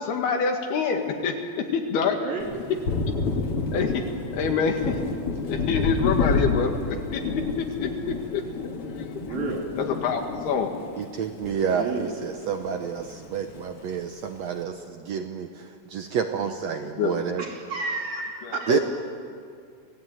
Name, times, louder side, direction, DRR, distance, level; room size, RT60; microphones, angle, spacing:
voice 1, 0.0-2.2 2.7-2.8 3.7-4.1 4.3-5.0 5.4-7.3 7.6-9.2 9.8-10.8 17.0-17.2 18.4-18.8, left 6 dB, 85° left, 3 dB, 4.0 m, -26 dB
voice 2, 2.1-2.5 9.1-9.7 11.5-12.1 17.4-18.8, right 4 dB, 50° right, -1 dB, 4.4 m, -32 dB
Thunder, 2.4-12.2 12.5-13.6, left 4 dB, 45° left, 2.2 m, -30 dB
voice 3, 11.0-17.4 18.7-18.8, right 7 dB, 80° right, 6 dB, 1.5 m, -29 dB
27.5 x 17.5 x 9.2 m, 2.2 s
omnidirectional pair, 4.4 m